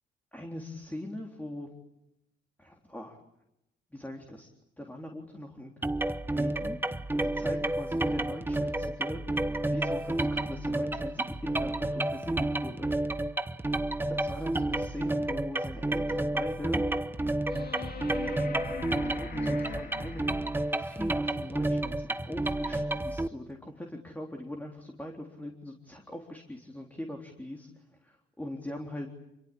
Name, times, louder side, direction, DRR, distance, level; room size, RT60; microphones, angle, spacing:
voice 1, 0.3-1.7 2.6-3.2 3.9-4.5 4.8-5.7 6.4-12.9 14.0-16.8 18.2-20.3 20.6-27.7 28.0-29.1, left 1 dB, 10° left, 1 dB, 3.7 m, -41 dB
sound 1, 5.8-23.3, right 1 dB, 10° right, 1.1 m, -30 dB
sound 2, 17.5-20.8 23.5-23.6, left 6 dB, 50° left, 2.4 m, -42 dB
27.5 x 23.0 x 8.7 m, 0.85 s
cardioid pair, 90°, 20 cm